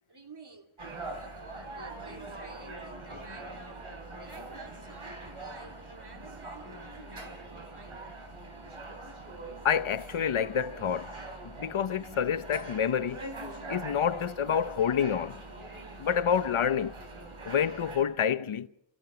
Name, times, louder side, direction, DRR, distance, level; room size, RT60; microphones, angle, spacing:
voice 1, 0.1-0.7 1.0-3.9 4.2-8.2, right 3 dB, 55° right, 2.8 m, -51 dB
sound 1, 0.8-18.0, right 2 dB, 85° right, 4.0 m, -43 dB
voice 2, 9.6-11.2 11.4-13.3 13.7-15.4 16.0-17.0 17.5-18.7, left 8 dB, 80° left, 0.8 m, -28 dB
28.0 x 14.0 x 6.9 m
wide cardioid pair, 55°, 48 cm